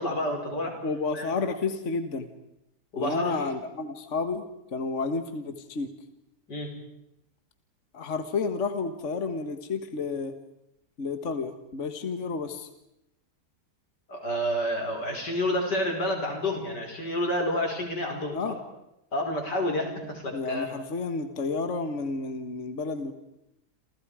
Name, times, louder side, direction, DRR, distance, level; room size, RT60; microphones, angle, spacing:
voice 1, 0.0-0.8 1.1-1.3 2.9-3.5 6.5-6.7 14.1-18.6 19.1-20.7, left 1 dB, 85° left, 2 dB, 5.8 m, -29 dB
voice 2, 0.8-2.3 3.0-4.4 4.7-5.9 7.9-10.3 11.0-12.7 18.3-18.6 20.3-23.1, left 4 dB, 45° left, 8 dB, 1.8 m, -31 dB
29.0 x 28.0 x 5.0 m, 0.85 s
omnidirectional pair, 1.8 m